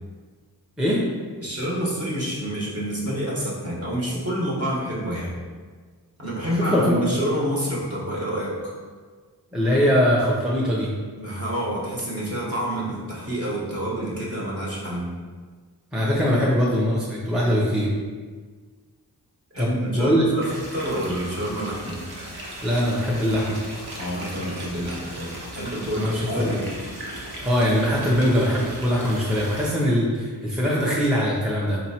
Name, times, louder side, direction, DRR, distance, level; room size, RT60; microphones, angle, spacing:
voice 1, 1.4-5.3 6.2-8.7 11.2-15.1 19.5-22.0 24.0-26.7, equal, 40° right, -6 dB, 1.1 m, -28 dB
voice 2, 6.7-7.2 9.5-10.9 15.9-17.9 19.6-20.2 22.6-23.6 26.0-26.5 27.4-31.8, equal, ahead, -5 dB, 0.6 m, -22 dB
sound 1, 20.4-29.7, right 1 dB, 75° right, 0.8 m, -37 dB
4.4 x 3.0 x 2.8 m, 1.5 s
wide cardioid pair, 75°, 38 cm